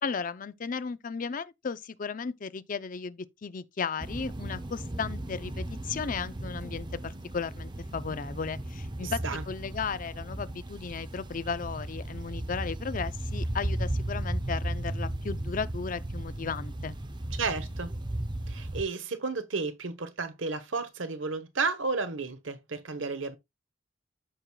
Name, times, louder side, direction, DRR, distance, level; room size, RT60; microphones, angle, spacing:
voice 1, 0.0-9.2 9.5-17.0, left 5 dB, 45° left, 0.5 m, -35 dB
sound 1, 4.0-18.8, right 1 dB, 25° right, 0.7 m, -35 dB
voice 2, 9.0-9.4 17.3-17.9 18.5-23.4, right 4 dB, 85° right, 1.0 m, -32 dB
14.0 x 4.7 x 2.3 m
head